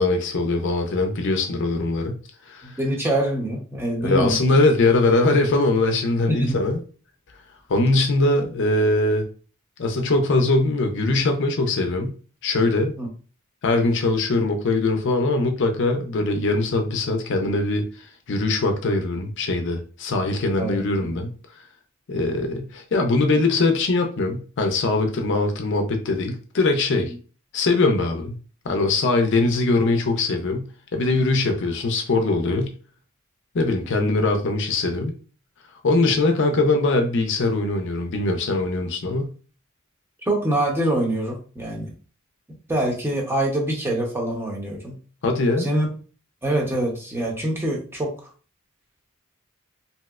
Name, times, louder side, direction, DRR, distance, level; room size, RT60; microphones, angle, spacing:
voice 1, 0.0-2.2 2.5-2.8 4.0-6.8 7.7-9.3 9.8-12.1 12.4-13.0 13.6-17.9 18.3-21.3 22.1-27.1 27.5-28.3 28.6-32.7 33.5-35.2 35.8-39.3 45.2-45.7, left 2 dB, 60° left, 4 dB, 0.5 m, -21 dB
voice 2, 2.6-4.3 6.3-6.5 13.0-13.1 20.5-21.1 40.3-41.9 42.7-44.9 45.6-45.9 46.4-48.1, right 1 dB, 10° right, -1 dB, 0.7 m, -24 dB
3.1 x 2.8 x 2.3 m, 0.39 s
head